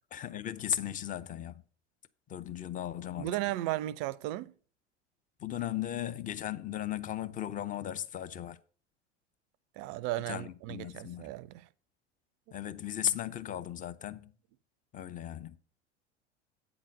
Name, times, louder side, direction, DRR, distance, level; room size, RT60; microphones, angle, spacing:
voice 1, 0.1-1.6 2.3-3.3 5.4-8.6 10.3-11.3 12.5-14.3 14.9-15.6, left 11 dB, 25° left, 0.5 m, -36 dB
voice 2, 3.2-4.5 9.8-11.7, right 16 dB, 45° right, 0.5 m, -35 dB
8.7 x 3.9 x 6.5 m
figure-of-eight pair, 75°, 35 cm